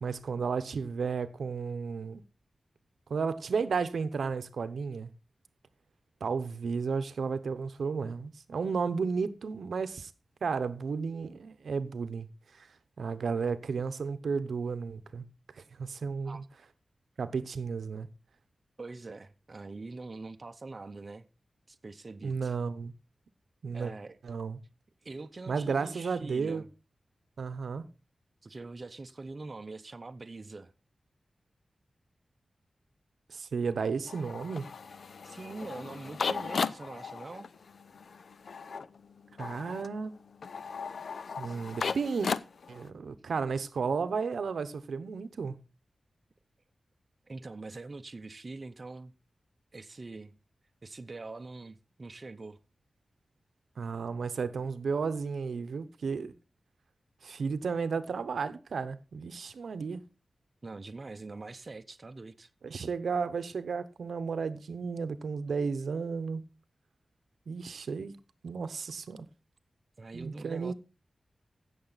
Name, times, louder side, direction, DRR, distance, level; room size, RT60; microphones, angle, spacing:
voice 1, 0.0-2.2 3.1-5.1 6.2-10.1 10.4-12.3 12.5-12.7 13.0-15.3 15.6-16.4 17.2-18.1 22.2-22.9 23.6-23.9 24.2-24.6 25.5-26.6 27.4-27.9 33.3-34.7 39.4-40.2 41.4-42.3 42.7-45.6 53.8-56.3 57.2-60.0 62.6-66.4 67.5-68.2 68.4-69.3 70.1-70.7, right 5 dB, 90° right, 0.8 m, -33 dB
voice 2, 18.8-21.3 21.7-22.5 23.7-24.2 25.0-26.7 28.4-30.7 35.2-37.5 41.3-41.7 47.3-49.1 49.7-50.4 50.8-52.6 60.6-62.5 70.0-70.7, right 3 dB, 40° right, 0.7 m, -44 dB
sound 1, 34.1-42.9, left 5 dB, 75° left, 0.5 m, -37 dB
15.5 x 6.9 x 4.0 m
wide cardioid pair, 110°, 0 cm